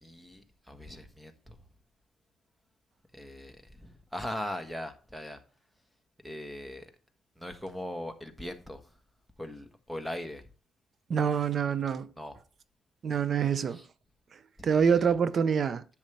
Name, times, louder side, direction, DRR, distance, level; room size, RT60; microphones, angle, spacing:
voice 1, 0.0-1.5 3.1-5.4 6.2-6.9 7.4-8.8 9.4-10.4 12.2-12.4 13.7-13.8 14.6-15.1, left 1 dB, 5° right, 1.4 m, -40 dB
voice 2, 11.1-12.1 13.0-13.8 14.6-15.8, right 7 dB, 50° right, 0.7 m, -26 dB
10.5 x 7.4 x 3.4 m
cardioid pair, 90°, 0 cm